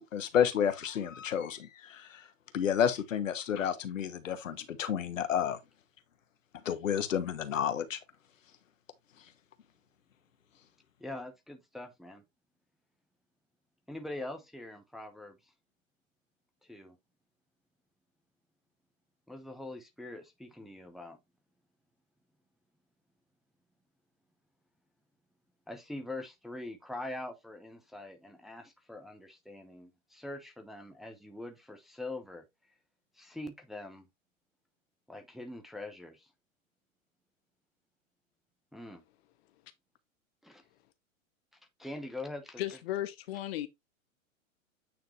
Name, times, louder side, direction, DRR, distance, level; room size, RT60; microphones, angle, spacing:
voice 1, 0.1-2.2 2.5-5.6 6.6-8.0, left 8 dB, 70° left, 1.3 m, -30 dB
voice 2, 11.0-12.2 13.9-15.5 16.6-17.0 19.3-21.2 25.7-32.4 33.1-34.1 35.1-36.3 38.7-39.0 40.4-40.6 41.8-42.6, left 2 dB, ahead, 0.9 m, -43 dB
voice 3, 42.6-43.7, left 13 dB, 50° left, 1.0 m, -35 dB
8.9 x 3.7 x 3.3 m
figure-of-eight pair, 105°, 40 cm